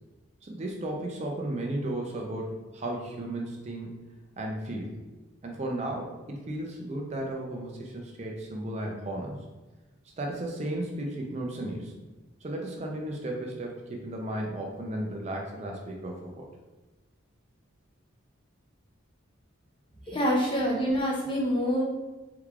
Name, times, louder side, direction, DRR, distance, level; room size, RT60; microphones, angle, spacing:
voice 1, 0.4-3.9 4.4-4.9 5.4-9.4 10.2-11.9 12.4-16.5 20.0-20.2, right 1 dB, 30° right, 0 dB, 0.4 m, -34 dB
voice 2, 20.1-21.8, equal, 25° left, -2 dB, 0.5 m, -26 dB
3.4 x 3.2 x 2.3 m, 1.2 s
head